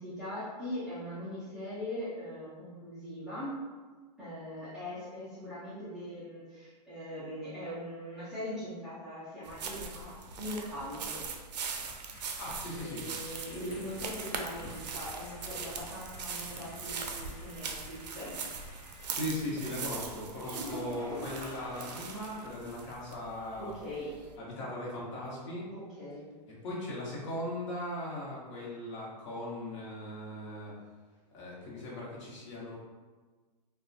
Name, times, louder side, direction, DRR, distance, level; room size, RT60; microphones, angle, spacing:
voice 1, 0.0-3.5 4.2-11.3 12.7-18.3 23.6-24.1 25.7-26.2, left 1 dB, ahead, -15 dB, 0.3 m, -41 dB
sound 1, 9.4-24.3, right 5 dB, 75° right, 0.4 m, -41 dB
sound 2, 12.1-19.1, left 1 dB, 25° left, 0.8 m, -51 dB
voice 2, 12.4-13.0 19.1-23.7 24.4-25.7 26.5-30.7 31.3-32.8, left 1 dB, 45° left, -5 dB, 0.9 m, -38 dB
sound 3, 20.3-22.6 22.9-23.0 23.5-23.6 27.3-27.4, equal, 65° left, 1.2 m, -43 dB
2.7 x 2.1 x 2.4 m, 1.4 s
hypercardioid pair, 165°, 21 cm